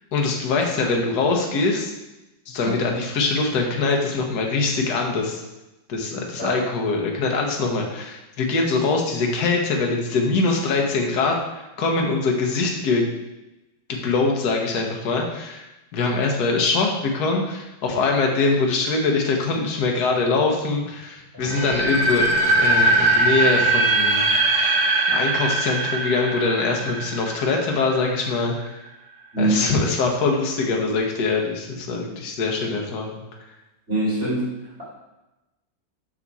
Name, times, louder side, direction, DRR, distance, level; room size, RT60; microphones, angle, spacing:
voice 1, 0.1-1.9 2.5-5.4 5.9-13.0 13.9-15.6 15.9-24.4 25.1-28.8 29.4-33.2, left 3 dB, 60° left, 1 dB, 1.5 m, -23 dB
sound 1, 21.4-28.3, right 2 dB, 70° right, 0.5 m, -21 dB
voice 2, 29.3-29.7 33.9-34.5 34.8-34.9, right 2 dB, 35° right, -10 dB, 2.8 m, -23 dB
6.0 x 5.9 x 4.1 m, 0.99 s
omnidirectional pair, 2.1 m